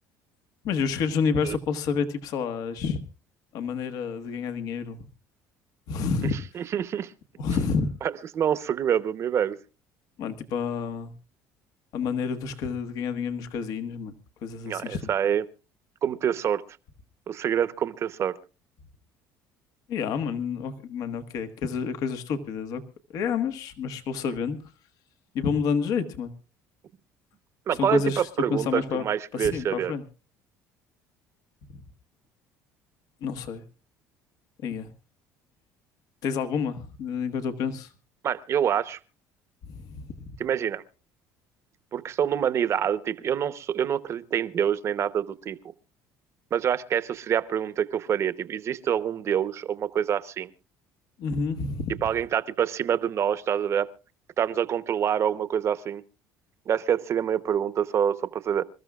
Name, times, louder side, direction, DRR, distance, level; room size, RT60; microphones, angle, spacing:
voice 1, 0.6-3.0 3.5-5.0 5.9-6.3 7.4-7.9 10.2-11.1 11.9-14.1 14.4-15.0 19.9-22.8 23.1-24.6 25.3-26.3 27.7-29.0 29.3-30.0 31.7-31.8 33.2-33.6 34.6-34.9 36.2-37.9 39.6-40.2 51.2-52.0, left 6 dB, 65° left, 1.4 m, -29 dB
voice 2, 6.5-7.1 8.0-9.6 14.7-15.4 16.0-16.6 17.3-18.4 27.7-29.9 38.2-39.0 40.4-40.8 41.9-45.6 46.5-50.5 52.0-53.9 54.4-56.0 56.7-58.6, right 9 dB, 45° right, 0.9 m, -26 dB
27.0 x 13.5 x 2.4 m
cardioid pair, 120°, 7 cm